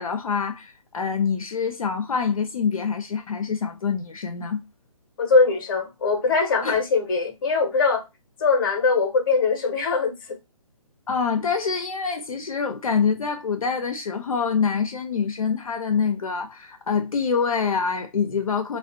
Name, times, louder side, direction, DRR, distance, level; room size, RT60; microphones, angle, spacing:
voice 1, 0.0-4.6 6.6-6.8 11.1-18.8, left 6 dB, 75° left, 0.4 m, -25 dB
voice 2, 5.2-8.0 8.4-10.1, left 4 dB, 35° left, 0.7 m, -21 dB
2.4 x 2.1 x 2.5 m
figure-of-eight pair, 135°, 18 cm